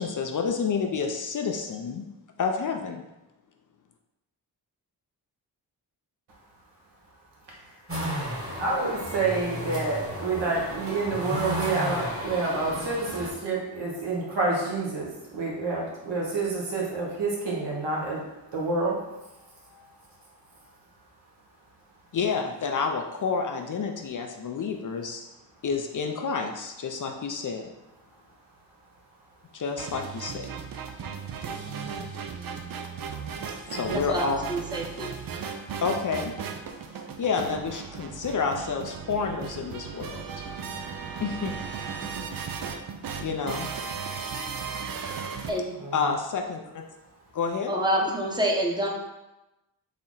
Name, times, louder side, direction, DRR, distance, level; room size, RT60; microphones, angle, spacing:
voice 1, 0.0-2.1 2.4-3.0 22.1-25.2 25.6-27.7 29.5-30.5 33.7-34.4 35.8-36.3 36.9-40.4 41.2-41.5 43.2-43.7 45.9-46.8 47.3-47.7, left 5 dB, 45° left, 3 dB, 0.5 m, -29 dB
sound 1, 7.9-13.3, equal, 30° right, 1.4 m, -33 dB
voice 2, 8.6-18.2 18.5-19.0 31.6-32.1 33.7-34.0 45.8-45.9, right 3 dB, 70° right, -3 dB, 1.3 m, -28 dB
sound 2, 29.8-45.5, right 6 dB, 50° right, 0.5 m, -36 dB
voice 3, 33.9-35.1 45.5-45.7 47.7-48.9, right 1 dB, 10° right, -1 dB, 0.9 m, -27 dB
4.2 x 2.1 x 3.8 m, 0.99 s
cardioid pair, 50°, 44 cm